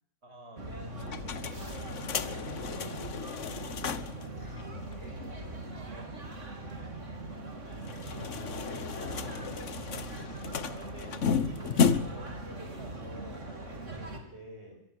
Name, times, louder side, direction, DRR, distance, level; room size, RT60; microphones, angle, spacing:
voice 1, 0.2-1.3 8.2-10.1 10.7-14.8, right 1 dB, 60° right, 3 dB, 6.3 m, -49 dB
sound 1, 0.6-14.2, right 2 dB, 85° right, 3.8 m, -41 dB
sound 2, 1.0-4.3 4.6-4.7 4.9-5.0 7.8-12.3, left 6 dB, 80° left, 1.5 m, -33 dB
voice 2, 1.0-4.7 4.9-6.8 10.1-10.7 14.0-14.4 14.7-14.8, left 1 dB, 15° left, -2 dB, 5.6 m, -54 dB
24.5 x 23.0 x 7.8 m, 0.76 s
omnidirectional pair, 1.3 m